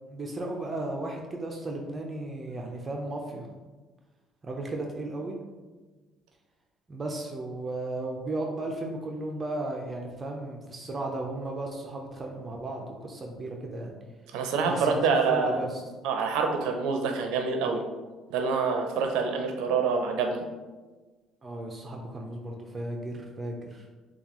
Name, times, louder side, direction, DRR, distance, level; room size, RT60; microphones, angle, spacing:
voice 1, 0.1-3.5 4.4-5.4 6.9-13.9 14.7-15.8 21.4-23.9, right 2 dB, 25° right, 1 dB, 0.6 m, -35 dB
voice 2, 14.3-15.6 16.0-17.8 18.3-20.4, right 5 dB, 90° right, 3 dB, 0.6 m, -26 dB
7.0 x 2.4 x 3.0 m, 1.3 s
cardioid pair, 115°, 0 cm